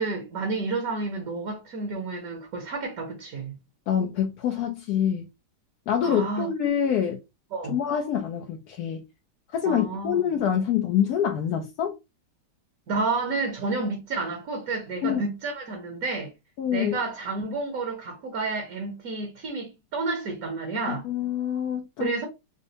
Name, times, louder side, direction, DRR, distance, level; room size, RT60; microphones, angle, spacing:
voice 1, 0.0-3.6 6.0-6.5 7.5-7.8 9.6-10.2 12.9-16.3 16.7-21.0 22.0-22.3, right 3 dB, 60° right, 1.4 m, -30 dB
voice 2, 3.9-5.3 5.9-7.2 7.7-9.1 9.5-12.0 15.0-15.2 16.6-17.0 20.9-22.1, left 9 dB, 70° left, 1.1 m, -26 dB
5.2 x 2.2 x 2.7 m
omnidirectional pair, 1.9 m